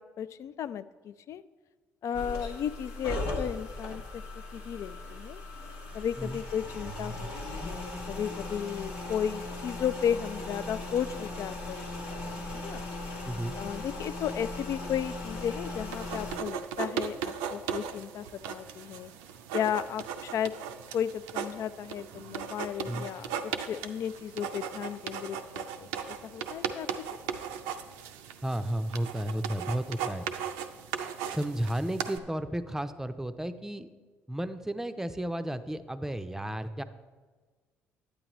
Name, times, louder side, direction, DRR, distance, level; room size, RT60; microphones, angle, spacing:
voice 1, 0.0-1.4 2.0-4.2 4.5-5.4 5.9-12.9 13.5-19.1 19.5-20.5 20.9-26.9, left 9 dB, 60° left, 15 dB, 0.3 m, -34 dB
sound 1, 2.1-16.4, left 2 dB, 85° left, 1.3 m, -38 dB
voice 2, 13.2-13.5 22.9-23.1 28.4-30.2 31.3-33.9 34.3-36.8, right 1 dB, 5° right, 10 dB, 0.5 m, -33 dB
sound 2, 15.9-32.2, right 8 dB, 85° right, 0.5 m, -37 dB
9.8 x 8.5 x 3.0 m, 1.4 s
hypercardioid pair, 60°, 6 cm